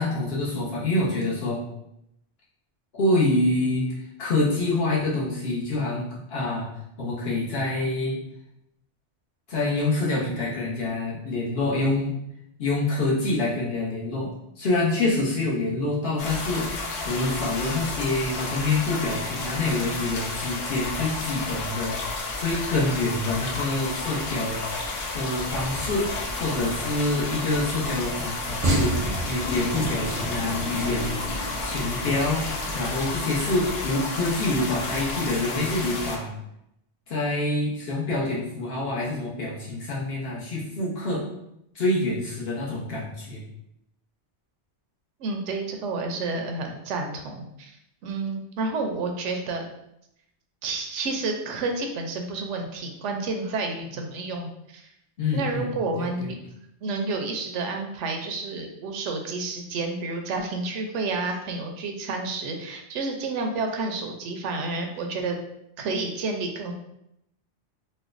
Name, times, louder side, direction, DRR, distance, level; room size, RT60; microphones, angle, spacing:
voice 1, 0.0-1.6 2.9-3.9 4.2-6.7 7.0-8.2 9.5-12.2 12.6-16.7 17.0-21.9 22.4-24.6 25.1-26.1 26.4-31.2 31.6-32.5 32.7-36.3 37.1-41.3 41.7-43.4 55.2-56.3, left 2 dB, 60° left, -5 dB, 1.1 m, -26 dB
sound 1, 16.2-36.2, left 3 dB, 80° left, 1.0 m, -32 dB
sound 2, 25.3-33.2, right 2 dB, 40° right, 0.6 m, -33 dB
voice 2, 45.2-47.7 48.0-49.6 50.6-54.9 55.3-56.4 56.8-65.4 65.8-66.7, right 3 dB, 90° right, 3 dB, 0.9 m, -30 dB
4.2 x 2.2 x 2.5 m, 0.80 s
omnidirectional pair, 1.2 m